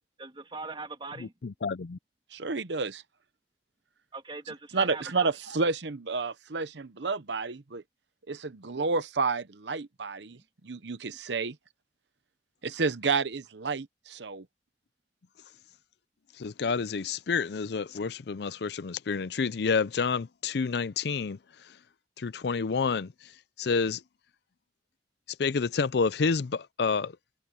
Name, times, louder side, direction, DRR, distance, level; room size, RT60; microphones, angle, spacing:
voice 1, 0.2-1.3 4.1-5.3, right 3 dB, 30° right, 2.4 m, -40 dB
voice 2, 1.4-2.0 16.4-21.4 22.2-23.1 23.6-24.0 25.4-27.1, left 5 dB, 60° left, 0.5 m, -29 dB
voice 3, 2.3-3.0 4.7-7.8 8.3-10.4 10.6-11.5 12.6-14.4, right 4 dB, 75° right, 0.9 m, -30 dB
head